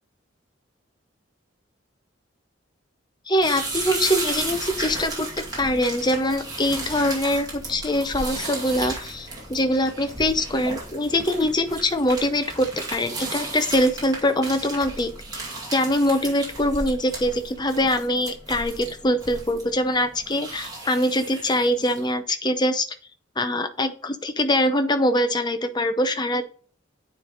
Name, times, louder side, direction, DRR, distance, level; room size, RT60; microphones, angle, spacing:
voice 1, 3.3-5.3 5.6-15.1 15.7-22.9 23.4-26.4, left 1 dB, 20° left, 8 dB, 0.6 m, -23 dB
sound 1, 3.4-22.1, right 2 dB, 20° right, 2.2 m, -34 dB
9.5 x 3.3 x 3.9 m, 0.44 s
head